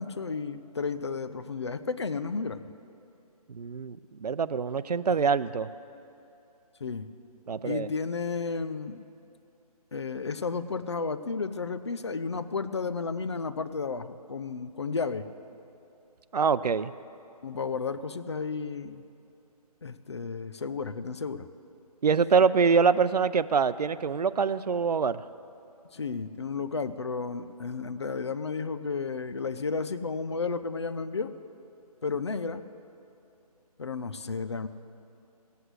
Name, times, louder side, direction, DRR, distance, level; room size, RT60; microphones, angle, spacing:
voice 1, 0.0-2.6 6.8-7.1 7.6-9.0 9.9-15.3 17.4-19.0 19.8-21.5 25.9-31.3 32.0-32.6 33.8-34.7, left 4 dB, 45° left, 12 dB, 0.5 m, -32 dB
voice 2, 3.5-5.7 7.5-7.9 16.3-16.9 22.0-25.2, right 5 dB, 90° right, 15 dB, 0.6 m, -25 dB
16.5 x 8.1 x 8.0 m, 2.8 s
hypercardioid pair, 175°, 20 cm